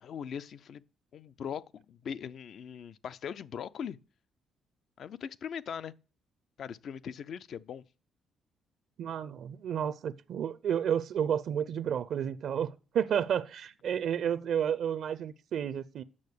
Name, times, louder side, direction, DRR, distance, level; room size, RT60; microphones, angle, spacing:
voice 1, 0.0-0.8 1.1-4.0 5.0-5.9 6.6-7.8, left 7 dB, 65° left, 0.5 m, -40 dB
voice 2, 9.0-16.0, right 8 dB, 70° right, 0.5 m, -31 dB
8.6 x 6.5 x 6.6 m
cardioid pair, 90°, 0 cm